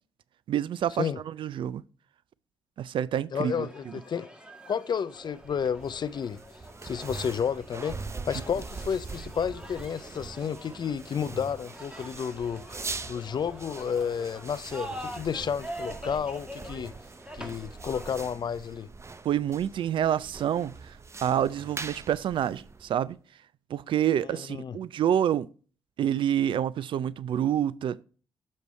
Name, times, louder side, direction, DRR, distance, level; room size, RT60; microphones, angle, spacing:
voice 1, 0.5-1.8 2.8-3.9 19.2-23.2 23.7-25.5 26.0-28.0, right 10 dB, 60° right, 0.4 m, -28 dB
voice 2, 3.3-4.3 4.7-6.4 6.8-8.0 8.3-12.8 13.1-16.9 17.3-18.9 24.3-24.8, left 7 dB, 50° left, 0.5 m, -31 dB
sound 1, 3.3-18.3, equal, 10° right, 1.9 m, -45 dB
sound 2, 5.3-23.1, right 4 dB, 30° right, 0.7 m, -42 dB
6.7 x 6.4 x 3.1 m
hypercardioid pair, 45°, 9 cm